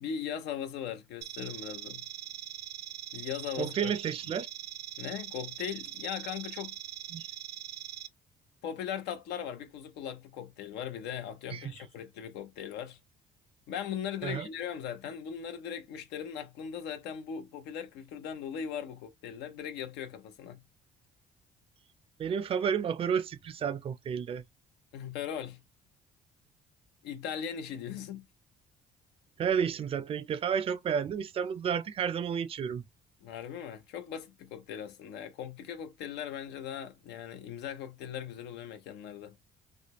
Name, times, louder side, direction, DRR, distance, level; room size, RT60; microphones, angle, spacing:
voice 1, 0.0-2.1 3.1-3.9 5.0-6.7 8.6-13.0 13.7-20.6 24.9-25.6 27.0-28.2 33.2-39.4, left 8 dB, 85° left, 0.7 m, -39 dB
sound 1, 1.2-8.1, right 14 dB, 75° right, 0.6 m, -42 dB
voice 2, 3.6-4.5 7.1-7.3 11.5-11.7 14.2-14.5 22.2-24.4 29.4-32.8, right 7 dB, 35° right, 0.4 m, -31 dB
3.4 x 2.1 x 2.9 m
cardioid pair, 110°, 17 cm